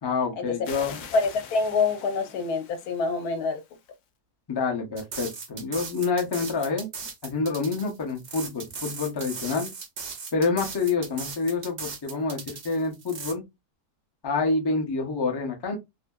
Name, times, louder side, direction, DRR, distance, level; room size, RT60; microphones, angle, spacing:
voice 1, 0.0-1.0 4.5-6.9 7.2-9.7 10.3-13.4 14.2-15.7, left 4 dB, 40° left, 0.3 m, -27 dB
sound 1, 0.6-4.0, left 7 dB, 70° left, 0.9 m, -45 dB
voice 2, 1.1-3.6, left 4 dB, 90° left, 1.2 m, -26 dB
sound 2, 5.0-13.3, right 5 dB, 85° right, 0.4 m, -38 dB
2.6 x 2.6 x 2.2 m
omnidirectional pair, 1.6 m